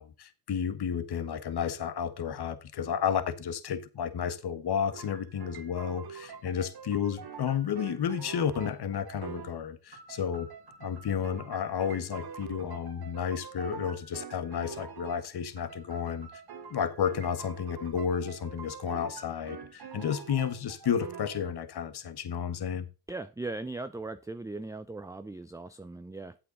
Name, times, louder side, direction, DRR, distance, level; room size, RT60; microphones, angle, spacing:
voice 1, 0.0-10.5 10.8-16.3 16.7-22.9, left 8 dB, 50° left, 1.3 m, -32 dB
sound 1, 4.9-9.7 9.9-15.3 15.6-21.5, right 6 dB, 50° right, 1.7 m, -45 dB
voice 2, 23.1-26.4, right 2 dB, 5° right, 0.5 m, -39 dB
8.7 x 7.8 x 3.8 m
supercardioid pair, 55°, 49 cm